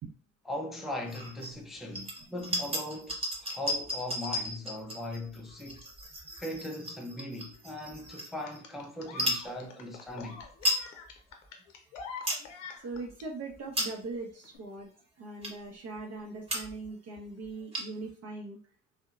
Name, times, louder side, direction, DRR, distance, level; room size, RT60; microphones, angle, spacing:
voice 1, 0.5-5.8 6.4-10.4, left 1 dB, ahead, 0.3 m, -39 dB
sound 1, 1.1-1.5 1.9-8.6 9.1-9.5 10.1-10.2 10.4-10.9 11.3-11.4 11.9-12.5 12.9-13.1 13.6-14.2 14.8-14.9 15.4-15.7 16.2-16.3 16.5-16.9 17.2-17.3 17.5-18.1, equal, 15° right, 1.1 m, -35 dB
sound 2, 8.5-13.3 14.4-14.6, left 5 dB, 85° left, 0.6 m, -45 dB
voice 2, 12.8-14.9 15.2-18.6, right 3 dB, 45° right, 0.7 m, -40 dB
2.7 x 2.1 x 2.3 m
hypercardioid pair, 70°, 36 cm